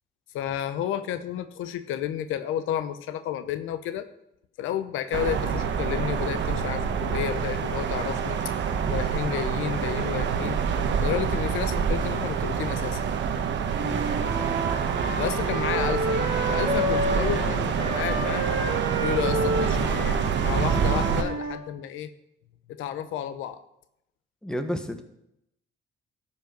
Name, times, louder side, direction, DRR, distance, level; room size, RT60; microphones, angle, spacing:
voice 1, 0.3-4.1 4.6-8.4 8.9-10.6 11.0-13.0 15.2-18.6 19.0-22.1 22.8-23.6, left 10 dB, 90° left, 11 dB, 0.7 m, -31 dB
sound 1, 5.1-21.2, right 6 dB, 65° right, 1.1 m, -27 dB
Wind instrument woodwind instrument, 13.7-17.4 17.7-21.6, right 1 dB, 45° right, 2.4 m, -30 dB
voice 2, 13.8-14.1 24.4-25.0, left 1 dB, 5° left, 7 dB, 1.2 m, -31 dB
13.0 x 5.5 x 5.2 m, 0.79 s
cardioid pair, 90°, 20 cm